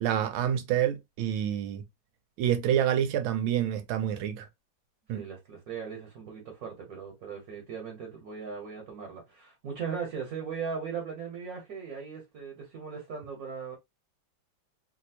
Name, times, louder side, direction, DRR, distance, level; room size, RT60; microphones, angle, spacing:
voice 1, 0.0-1.8 2.4-4.5 5.1-5.2, right 10 dB, 85° right, 1.4 m, -27 dB
voice 2, 5.1-13.8, right 6 dB, 55° right, 1.3 m, -38 dB
3.2 x 2.7 x 2.7 m
omnidirectional pair, 2.2 m